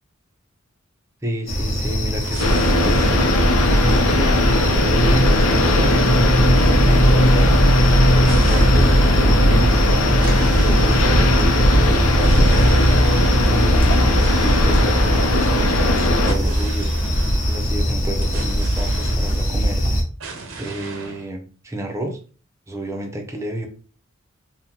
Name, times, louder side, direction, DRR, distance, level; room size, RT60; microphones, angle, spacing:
voice 1, 1.2-3.1 3.7-4.4 4.7-7.5 8.4-12.5 13.4-16.9 17.4-19.8 20.6-22.2 22.7-23.7, right 1 dB, 15° right, 3 dB, 0.5 m, -29 dB
sound 1, 1.5-20.0, equal, 40° left, 0.9 m, -18 dB
sound 2, 2.2-6.9 8.2-19.9 20.2-21.3, right 3 dB, 70° right, 0.6 m, -37 dB
sound 3, 2.4-16.3, left 1 dB, 80° left, 0.5 m, -19 dB
3.6 x 2.1 x 2.9 m, 0.38 s
head